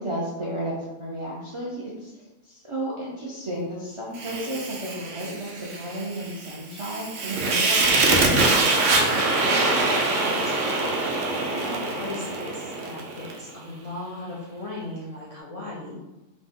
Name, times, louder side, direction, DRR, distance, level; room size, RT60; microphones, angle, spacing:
voice 1, 0.0-9.0, right 1 dB, 50° right, -6 dB, 0.3 m, -33 dB
Fire, 4.2-13.4, right 3 dB, 75° right, 0.9 m, -24 dB
voice 2, 9.7-10.9 11.2-16.0, left 2 dB, 55° left, -7 dB, 0.4 m, -38 dB
3.0 x 2.0 x 3.5 m, 1.0 s
omnidirectional pair, 1.3 m